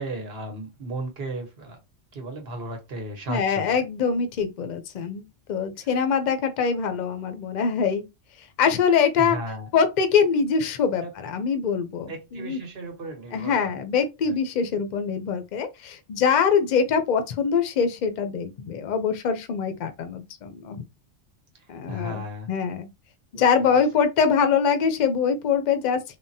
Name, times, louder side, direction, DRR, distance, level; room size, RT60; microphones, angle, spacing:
voice 1, 0.0-1.8 2.1-3.8 5.8-5.9 9.2-9.7 11.0-11.1 12.1-13.8 14.2-14.3 21.9-22.5 23.3-23.4 23.7-23.8, right 1 dB, 60° right, 1.1 m, -35 dB
voice 2, 3.3-8.0 8.4-9.4 9.7-12.6 13.3-20.8 21.7-22.2 22.5-22.9 23.3-26.2, left 6 dB, 55° left, 0.6 m, -24 dB
3.5 x 2.0 x 2.7 m
omnidirectional pair, 1.2 m